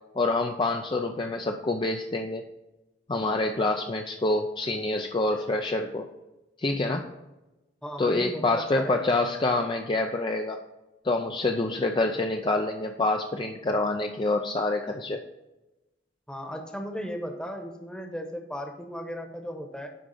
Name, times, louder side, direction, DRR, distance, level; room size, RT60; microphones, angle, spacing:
voice 1, 0.2-2.4 3.1-6.1 6.6-7.0 8.0-10.6 11.0-15.2, left 2 dB, 25° left, 4 dB, 0.4 m, -26 dB
voice 2, 7.8-9.2 16.3-19.9, equal, 5° left, 3 dB, 1.0 m, -36 dB
10.0 x 3.7 x 5.6 m, 1.0 s
head